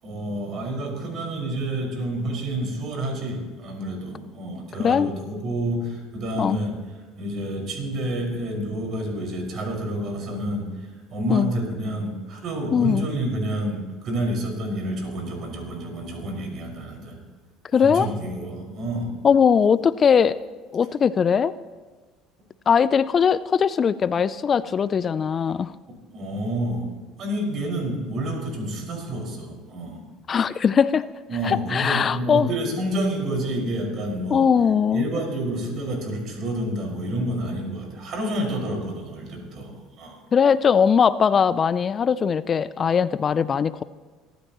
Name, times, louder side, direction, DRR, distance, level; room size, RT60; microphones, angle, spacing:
voice 1, 0.0-6.7 7.2-17.2 17.7-19.2 26.1-26.9 27.2-30.0 31.3-34.5 34.9-40.2, right 1 dB, 55° right, 1 dB, 5.4 m, -29 dB
voice 2, 12.7-13.1 17.7-18.1 19.2-20.4 20.7-21.5 22.7-25.7 30.3-31.0 31.4-32.5 34.3-35.1 40.3-43.8, left 7 dB, 40° left, 17 dB, 0.4 m, -20 dB
24.0 x 13.0 x 3.1 m, 1.4 s
hypercardioid pair, 70°, 0 cm